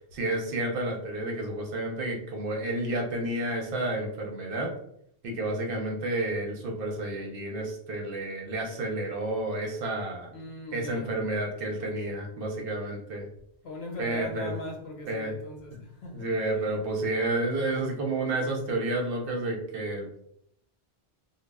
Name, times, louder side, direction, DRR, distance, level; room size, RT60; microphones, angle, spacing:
voice 1, 0.1-4.7 5.2-10.3 10.7-13.3 14.0-14.5 15.1-15.3 16.1-20.2, right 2 dB, 65° right, 0.7 m, -30 dB
voice 2, 10.3-11.1 13.6-16.6, left 1 dB, 75° left, 0.9 m, -40 dB
2.0 x 2.0 x 3.3 m
omnidirectional pair, 1.1 m